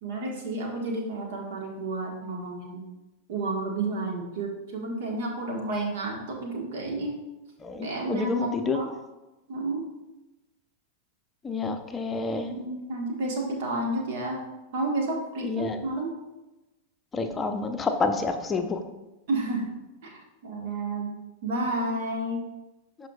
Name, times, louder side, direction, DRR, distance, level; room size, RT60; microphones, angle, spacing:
voice 1, 0.0-2.8 3.3-7.2 7.8-8.9 9.5-9.9 12.5-14.4 14.7-16.2 19.3-19.7 20.0-21.1 21.4-22.4, right 2 dB, 55° right, 1 dB, 1.4 m, -31 dB
voice 2, 7.6-8.8 11.4-12.5 15.4-15.8 17.1-18.8, left 3 dB, 15° left, 5 dB, 0.7 m, -28 dB
12.0 x 4.5 x 2.4 m, 1.0 s
figure-of-eight pair, 90°, 0 cm